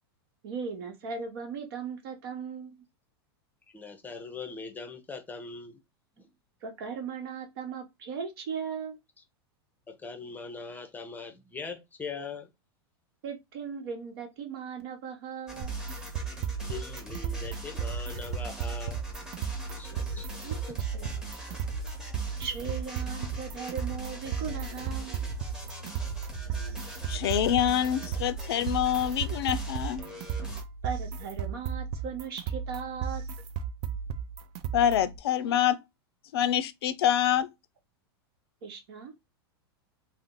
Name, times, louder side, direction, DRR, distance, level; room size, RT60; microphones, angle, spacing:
voice 1, 0.4-2.7 6.6-9.0 13.2-15.8 20.4-20.6 20.9-21.1 22.4-25.2 30.8-33.2 35.6-35.7 38.6-39.1, right 6 dB, 65° right, 1.0 m, -38 dB
voice 2, 3.7-5.8 6.2-6.3 9.9-12.5 16.7-19.1 19.7-20.3, left 4 dB, 15° left, 0.6 m, -41 dB
sound 1, 15.5-30.6, right 2 dB, 5° right, 0.9 m, -41 dB
sound 2, 15.6-35.2, right 7 dB, 45° right, 0.5 m, -35 dB
voice 3, 27.1-30.0 34.7-35.8 36.3-37.5, left 10 dB, 75° left, 0.4 m, -26 dB
2.6 x 2.1 x 3.7 m
hypercardioid pair, 110°, 13 cm